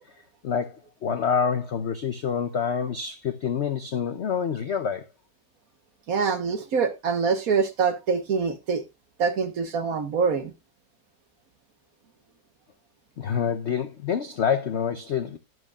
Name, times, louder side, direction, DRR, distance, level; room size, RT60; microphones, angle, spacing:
voice 1, 0.4-5.0 13.2-15.4, left 7 dB, 65° left, 0.7 m, -27 dB
voice 2, 6.1-8.8 9.2-10.5, right 5 dB, 55° right, 1.4 m, -25 dB
11.0 x 10.5 x 2.3 m
omnidirectional pair, 2.0 m